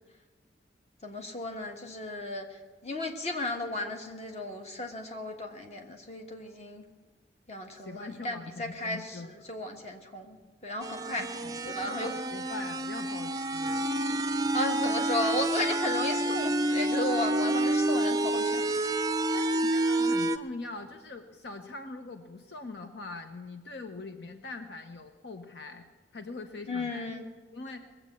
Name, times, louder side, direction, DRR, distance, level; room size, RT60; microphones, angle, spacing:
voice 1, 1.0-2.5 2.8-6.8 7.5-10.4 10.6-11.3 11.7-12.1 14.5-18.6 26.7-27.2, left 1 dB, 35° left, 3 dB, 1.4 m, -34 dB
voice 2, 7.7-9.3 11.2-14.2 19.3-25.9 26.1-27.1 27.5-27.8, left 3 dB, 70° left, 6 dB, 0.8 m, -42 dB
sound 1, 10.8-20.4, right 1 dB, 20° right, 0.5 m, -28 dB
20.5 x 8.0 x 7.4 m, 1.4 s
head